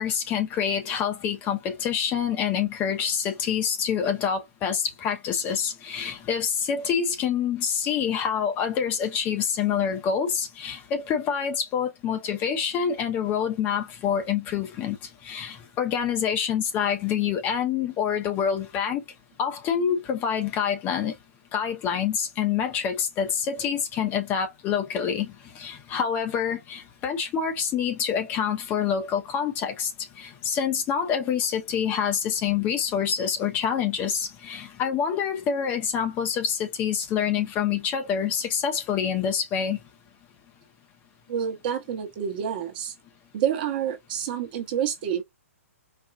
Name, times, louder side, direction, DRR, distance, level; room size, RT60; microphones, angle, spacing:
voice 1, 0.0-15.0 15.2-19.0 19.4-21.1 21.5-29.9 30.2-39.8, left 7 dB, 20° left, 0.7 m, -26 dB
voice 2, 41.3-42.9 43.3-45.2, right 9 dB, 40° right, 0.9 m, -28 dB
4.3 x 2.3 x 2.4 m
figure-of-eight pair, 125°, 8 cm